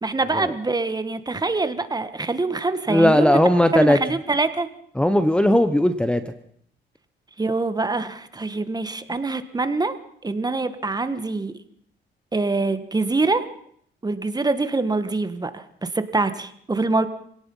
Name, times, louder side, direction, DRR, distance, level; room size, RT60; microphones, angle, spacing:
voice 1, 0.0-3.4 3.7-4.7 7.4-9.9 10.2-11.5 12.3-13.4 14.0-17.1, right 3 dB, 20° right, 11 dB, 1.7 m, -24 dB
voice 2, 2.9-4.0 5.0-6.2, left 1 dB, 5° left, 11 dB, 1.0 m, -17 dB
25.5 x 18.0 x 5.6 m, 0.65 s
cardioid pair, 90°, 20 cm